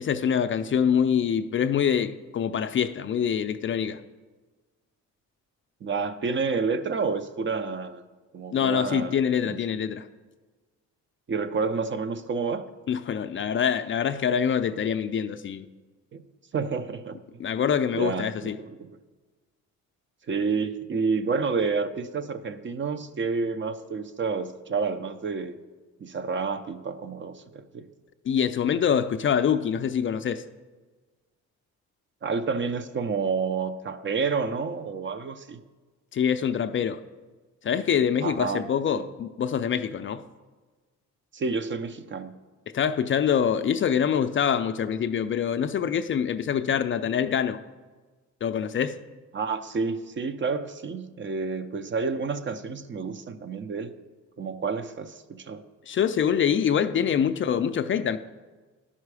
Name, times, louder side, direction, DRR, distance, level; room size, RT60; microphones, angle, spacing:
voice 1, 0.0-4.0 8.5-10.1 12.9-15.7 17.4-18.6 28.3-30.4 36.1-37.0 37.6-40.2 42.7-47.6 48.4-49.0 55.9-58.2, left 8 dB, 40° left, 0.4 m, -25 dB
voice 2, 5.8-8.0 8.3-9.6 11.3-12.6 16.1-16.2 16.5-17.2 17.9-18.9 20.3-25.6 26.0-27.8 32.2-35.6 38.2-38.6 39.0-39.1 41.3-42.3 49.3-53.9 54.4-55.6, right 4 dB, 40° right, 0.6 m, -29 dB
11.5 x 5.6 x 4.8 m
cardioid pair, 90°, 30 cm